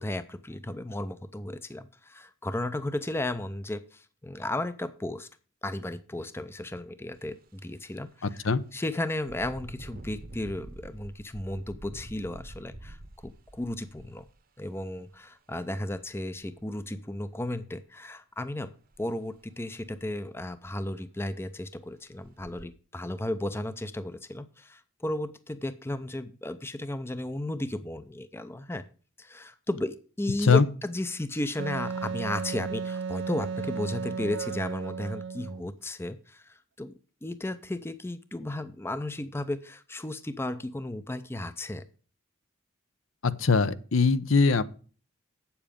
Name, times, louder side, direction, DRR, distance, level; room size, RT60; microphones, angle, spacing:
voice 1, 0.0-5.3 5.6-8.3 8.7-13.0 13.2-14.2 14.6-18.7 19.0-28.8 29.2-36.9 37.2-41.8, left 1 dB, 10° left, 0.5 m, -34 dB
Engine, 7.1-7.3 7.8-8.0 9.2-15.0 15.9-16.0 16.4-17.1 18.9-19.1 19.4-19.5 20.0-20.1 20.4-20.9 21.5-21.6 22.2-22.6, right 1 dB, 45° right, 0.9 m, -46 dB
Wind instrument woodwind instrument, 31.6-35.7, right 5 dB, 60° right, 0.5 m, -34 dB
voice 2, 43.2-44.6, left 4 dB, 70° left, 0.7 m, -21 dB
8.6 x 7.1 x 5.1 m
head